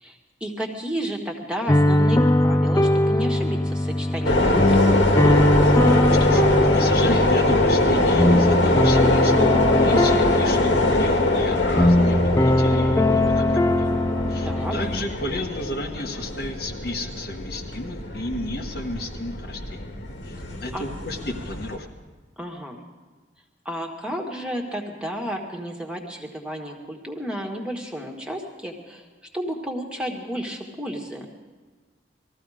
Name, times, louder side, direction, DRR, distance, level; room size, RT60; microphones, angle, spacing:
voice 1, 0.0-4.9 14.4-14.7 20.7-20.8 22.4-22.8 23.6-29.0 29.3-31.3, equal, 5° right, 0 dB, 1.6 m, -32 dB
sound 1, 1.7-15.0, left 1 dB, 15° left, 0.4 m, -20 dB
sound 2, 4.2-21.8, left 2 dB, 80° left, 2.0 m, -23 dB
voice 2, 6.2-13.9 14.3-20.0 20.2-21.9, left 2 dB, 55° left, 2 dB, 1.2 m, -32 dB
20.5 x 14.5 x 5.0 m, 1.4 s
head